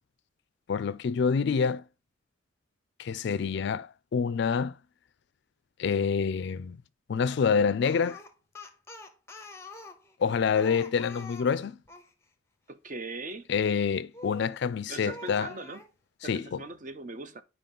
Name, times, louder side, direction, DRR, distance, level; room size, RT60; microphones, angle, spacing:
voice 1, 0.7-1.8 3.0-4.7 5.8-6.8 7.1-8.2 10.2-11.8 13.5-15.5 16.2-16.6, left 6 dB, 55° left, 0.3 m, -27 dB
Speech, 7.8-12.1 14.1-14.6 15.0-15.9, left 2 dB, 15° left, 0.6 m, -46 dB
voice 2, 12.7-13.5 14.9-15.8 16.2-17.4, right 3 dB, 40° right, 0.5 m, -40 dB
4.9 x 3.8 x 5.3 m
head